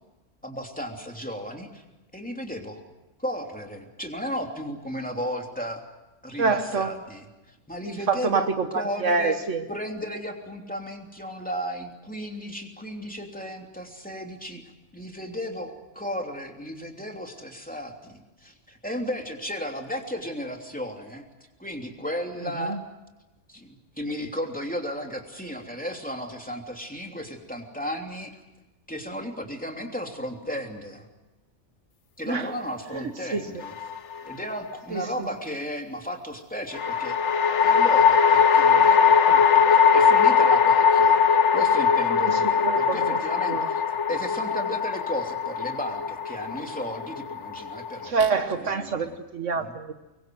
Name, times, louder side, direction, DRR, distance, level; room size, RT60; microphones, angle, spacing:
voice 1, 0.4-1.8 2.1-2.8 3.2-5.8 6.2-8.5 8.7-9.4 9.7-14.6 14.9-21.2 21.6-22.8 23.5-28.4 28.9-31.1 32.2-33.7 34.2-37.2 37.6-48.2 48.5-49.1 49.6-49.7, equal, 5° left, 2 dB, 3.1 m, -34 dB
voice 2, 6.4-6.9 7.8-9.6 22.7-22.8 32.3-32.5 32.9-33.5 34.9-35.3 42.2-43.0 43.5-43.6 48.0-49.9, right 4 dB, 75° right, 8 dB, 1.6 m, -26 dB
sound 1, 33.6-34.3 36.7-48.1, left 6 dB, 65° left, 1.4 m, -20 dB
25.5 x 22.5 x 7.8 m, 1.1 s
omnidirectional pair, 1.3 m